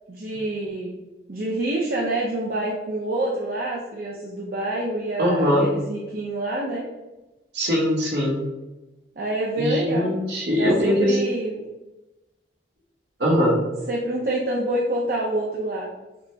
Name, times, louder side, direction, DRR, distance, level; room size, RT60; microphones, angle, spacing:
voice 1, 0.1-0.9 1.3-6.8 9.2-10.1 10.6-11.6 13.9-15.9, right 1 dB, 55° right, -2 dB, 0.5 m, -27 dB
voice 2, 5.2-5.7 7.5-8.5 9.6-11.2 13.2-13.6, equal, 70° right, -2 dB, 1.1 m, -21 dB
5.9 x 2.0 x 3.3 m, 1.1 s
head